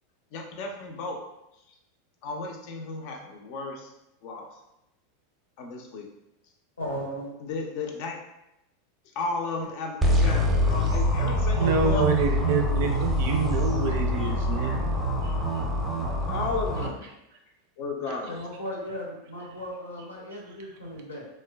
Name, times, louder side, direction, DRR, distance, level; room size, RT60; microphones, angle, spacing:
voice 1, 0.3-1.2 2.2-3.9 4.2-4.5 5.6-6.1 7.4-8.2 9.2-12.1 15.9-17.1 17.8-18.4, left 3 dB, 50° left, 2 dB, 0.5 m, -33 dB
voice 2, 6.8-7.3 18.3-21.3, equal, 80° left, -3 dB, 0.8 m, -36 dB
sound 1, 10.0-16.9, equal, 5° right, 0.6 m, -25 dB
voice 3, 11.6-15.6 18.1-18.2, right 4 dB, 60° right, 2 dB, 0.4 m, -28 dB
3.0 x 2.1 x 2.2 m, 0.87 s
figure-of-eight pair, 85°, 0 cm